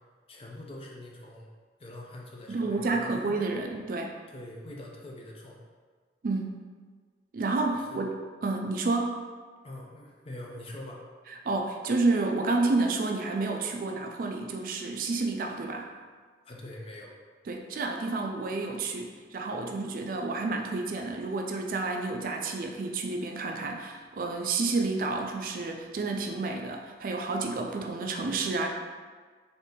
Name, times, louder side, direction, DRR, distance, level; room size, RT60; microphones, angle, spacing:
voice 1, 0.3-1.5 1.8-3.4 4.3-5.6 7.9-8.0 9.6-11.0 16.4-17.1, left 1 dB, 30° left, -1 dB, 0.5 m, -44 dB
voice 2, 2.5-4.2 6.2-6.5 7.3-8.1 8.4-9.3 11.5-15.9 17.5-28.7, right 3 dB, 50° right, 3 dB, 0.3 m, -30 dB
4.0 x 2.6 x 3.7 m, 1.5 s
head